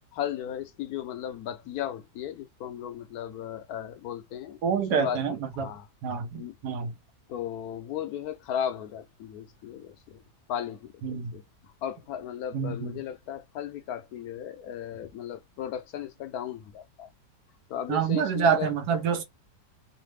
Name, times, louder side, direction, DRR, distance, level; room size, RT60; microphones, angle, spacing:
voice 1, 0.1-4.6 4.9-6.6 7.3-10.2 10.5-17.1 17.7-18.7, left 9 dB, 70° left, 1.0 m, -36 dB
voice 2, 4.6-5.7 6.0-6.9 11.0-11.3 12.5-12.9 17.9-19.2, right 7 dB, 80° right, 1.2 m, -27 dB
3.1 x 2.0 x 3.2 m
omnidirectional pair, 1.7 m